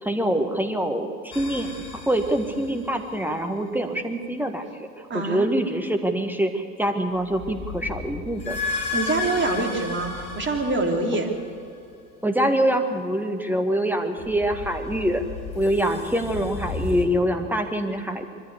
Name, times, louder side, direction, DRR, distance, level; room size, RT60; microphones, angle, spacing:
voice 1, 0.0-4.9 5.1-8.6 12.2-15.2 15.5-18.3, right 1 dB, 5° right, 5 dB, 1.6 m, -25 dB
sound 1, 1.3-3.3 7.2-11.7 14.2-17.0, left 4 dB, 60° left, 3.3 m, -34 dB
voice 2, 5.1-5.5 8.9-11.3, right 2 dB, 25° right, 2 dB, 3.3 m, -25 dB
23.5 x 15.0 x 8.3 m, 2.5 s
figure-of-eight pair, 75°, 46 cm